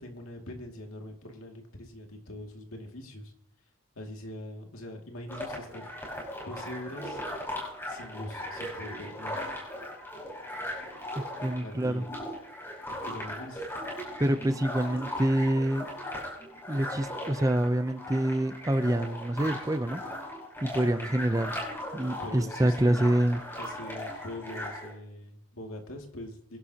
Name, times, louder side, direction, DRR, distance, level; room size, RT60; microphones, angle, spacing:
voice 1, 0.0-3.3 4.0-5.9 6.5-7.2 7.9-9.4 11.6-12.1 13.0-13.7 22.2-22.9 23.6-26.6, left 1 dB, 90° left, 2 dB, 2.4 m, -42 dB
sound 1, 5.3-24.9, left 1 dB, 10° left, 5.1 m, -38 dB
voice 2, 11.4-12.0 14.2-15.8 16.7-20.0 20.6-21.6 21.9-23.4, right 1 dB, 15° right, 10 dB, 0.6 m, -26 dB
23.5 x 11.0 x 2.9 m, 0.68 s
head